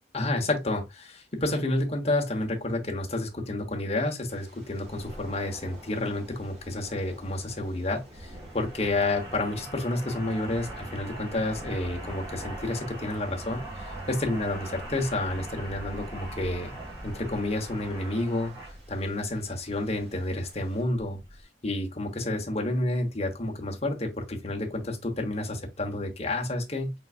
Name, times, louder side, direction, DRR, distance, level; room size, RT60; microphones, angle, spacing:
voice 1, 0.1-16.7 17.0-18.5 18.9-21.2 21.6-26.9, left 2 dB, 35° left, 1.1 m, -30 dB
sound 1, 4.3-20.8, right 1 dB, 35° right, 1.4 m, -52 dB
sound 2, 4.9-21.4, right 1 dB, 20° right, 1.8 m, -42 dB
4.5 x 4.0 x 2.4 m
head